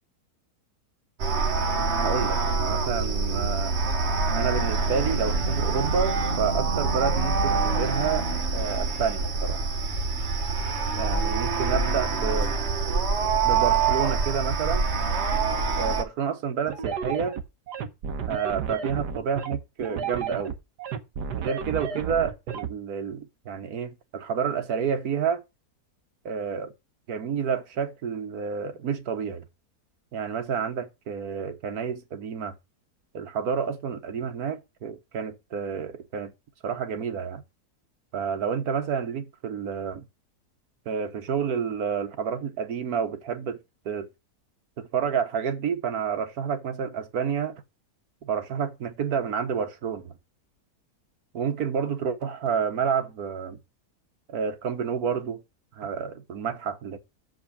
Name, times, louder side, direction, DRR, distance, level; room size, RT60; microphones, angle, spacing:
sound 1, 1.2-16.0, right 4 dB, 45° right, 1.3 m, -25 dB
voice 1, 1.9-3.7 4.4-9.6 10.9-12.6 13.4-14.9 15.8-17.4 18.3-20.5 21.4-25.4 26.2-26.7 27.1-29.4 30.1-32.5 33.1-36.3 36.6-37.4 38.1-40.0 40.9-43.6 43.8-44.1 44.8-47.6 48.2-50.1 51.3-53.6 54.3-55.4 55.7-57.0, right 6 dB, 70° right, 1.6 m, -29 dB
sound 2, 16.7-22.7, right 6 dB, 85° right, 1.6 m, -32 dB
7.1 x 5.2 x 6.9 m
omnidirectional pair, 1.7 m